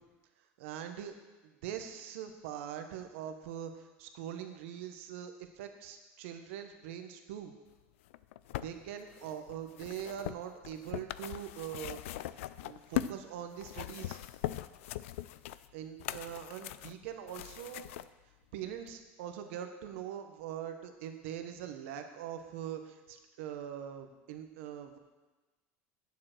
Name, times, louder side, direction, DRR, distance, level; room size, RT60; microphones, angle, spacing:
voice 1, 0.6-1.1 1.4-7.5 8.6-12.2 12.6-14.2 15.7-17.9 18.5-25.0, right 9 dB, 80° right, 7 dB, 1.1 m, -42 dB
sound 1, 8.1-13.2 13.6-18.1 18.9-19.0, left 14 dB, 90° left, 0.4 m, -40 dB
8.8 x 7.4 x 6.1 m, 1.2 s
supercardioid pair, 120°, 7 cm